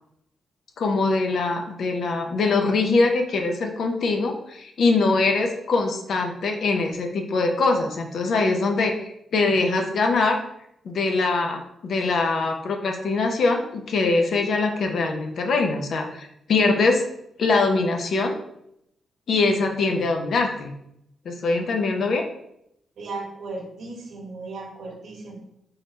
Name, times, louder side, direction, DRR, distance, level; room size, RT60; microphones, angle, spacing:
voice 1, 0.8-10.4 10.8-17.0 17.4-18.4 19.3-20.7 21.2-22.2, left 3 dB, 65° left, 3 dB, 0.7 m, -23 dB
voice 2, 23.0-25.5, right 3 dB, 70° right, 0 dB, 1.3 m, -36 dB
4.0 x 3.9 x 3.2 m, 0.78 s
cardioid pair, 120°, 0 cm